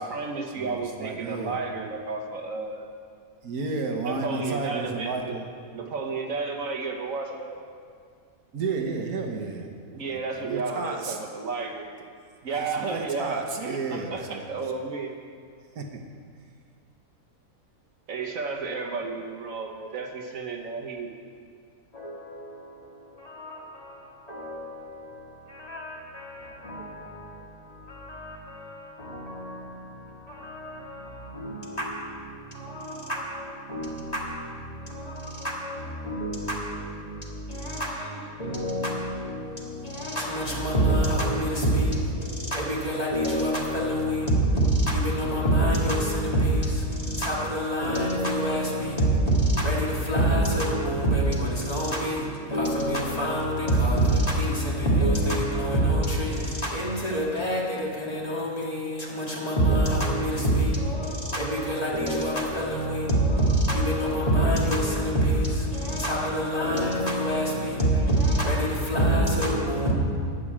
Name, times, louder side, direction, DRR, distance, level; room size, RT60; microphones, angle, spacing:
voice 1, 0.0-2.9 4.1-5.3 5.7-7.6 9.9-11.9 12.4-15.2 18.1-21.1, right 4 dB, 65° right, 1.4 m, -32 dB
voice 2, 0.5-1.6 3.4-5.5 8.5-9.7 10.0-11.2 12.6-14.5 15.7-16.0, right 4 dB, 85° right, 1.6 m, -32 dB
voice 3, 21.9-69.9, right 1 dB, 25° left, 2.0 m, -26 dB
11.5 x 6.8 x 8.6 m
omnidirectional pair, 1.5 m